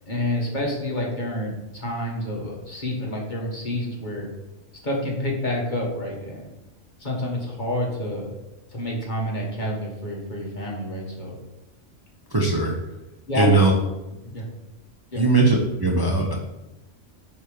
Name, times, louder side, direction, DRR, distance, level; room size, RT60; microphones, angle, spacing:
voice 1, 0.1-4.3 4.8-6.5 7.0-8.3 8.7-11.3 13.3-13.6 14.2-14.5 15.1-15.2, left 1 dB, 40° left, -2 dB, 1.8 m, -28 dB
voice 2, 12.3-12.9 13.3-13.7 15.2-16.3, right 3 dB, 20° right, -2 dB, 0.9 m, -20 dB
9.2 x 3.8 x 4.9 m, 1.0 s
omnidirectional pair, 1.3 m